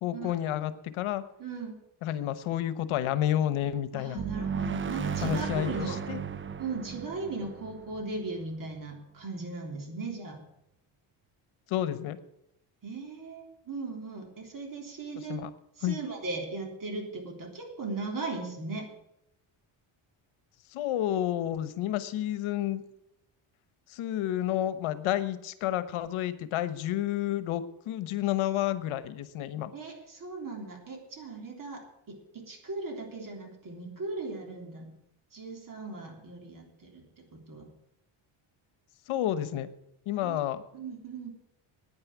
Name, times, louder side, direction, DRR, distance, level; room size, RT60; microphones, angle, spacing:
voice 1, 0.0-1.2 2.0-4.2 5.2-6.2 11.7-12.2 15.2-15.5 15.8-16.0 20.7-22.8 23.9-29.7 39.1-39.7 40.1-40.6, left 12 dB, 80° left, 14 dB, 1.1 m, -30 dB
voice 2, 1.4-1.8 3.9-6.0 6.6-10.4 12.8-15.4 15.8-18.9 29.7-34.9 35.3-37.7 40.2-40.4 40.7-41.3, right 3 dB, 40° right, 2 dB, 3.6 m, -38 dB
sound 1, 4.2-8.8, right 6 dB, 25° right, 0.6 m, -35 dB
9.7 x 9.7 x 8.2 m, 0.81 s
cardioid pair, 130°, 48 cm